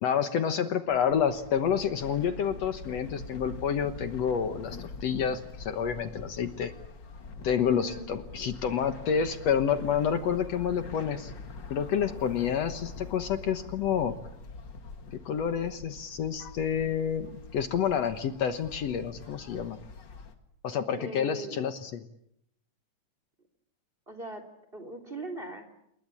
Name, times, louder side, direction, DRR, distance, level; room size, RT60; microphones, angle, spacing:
voice 1, 0.0-6.7 7.4-11.3 11.7-14.2 15.3-19.8 20.6-21.9, left 7 dB, 65° left, 9 dB, 2.2 m, -29 dB
sound 1, 0.9-20.3, left 4 dB, 40° left, 2.3 m, -44 dB
voice 2, 7.7-8.0 20.9-21.6 24.1-24.4 24.7-25.7, right 2 dB, 20° right, 8 dB, 3.3 m, -40 dB
29.0 x 21.0 x 8.6 m, 0.78 s
omnidirectional pair, 3.4 m